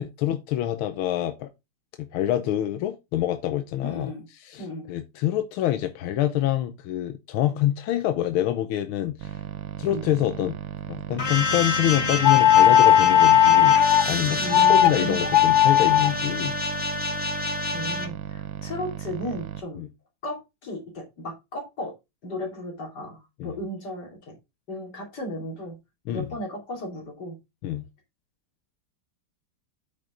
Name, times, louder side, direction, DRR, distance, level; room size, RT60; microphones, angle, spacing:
voice 1, 0.0-1.5 2.1-9.4 9.8-10.5 10.9-16.6 19.8-19.9 23.4-23.5 26.1-26.4 27.6-27.8, left 12 dB, 85° left, 1.6 m, -26 dB
voice 2, 3.8-4.3 4.6-4.9 9.9-10.1 14.4-15.2 17.6-19.8 20.2-21.9 22.2-24.4 24.7-25.8 26.1-27.4, equal, 55° left, 3.5 m, -35 dB
sound 1, 9.2-19.6, right 10 dB, 75° right, 1.4 m, -36 dB
sound 2, 11.2-18.1, left 3 dB, 35° left, 1.3 m, -28 dB
sound 3, 12.2-14.1 14.5-14.9 15.3-16.1, left 11 dB, 70° left, 0.9 m, -16 dB
8.6 x 6.0 x 3.7 m
omnidirectional pair, 2.2 m